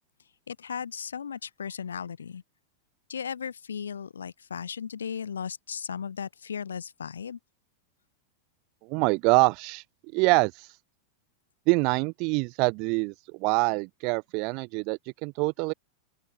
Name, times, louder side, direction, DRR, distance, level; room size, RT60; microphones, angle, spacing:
voice 1, 0.5-2.4 3.1-7.4, left 7 dB, 70° left, 2.1 m, -36 dB
voice 2, 8.8-9.8 10.1-10.8 11.7-13.1 13.4-15.7, right 30 dB, 45° right, 0.8 m, -25 dB
open air
figure-of-eight pair, 90°, 0 cm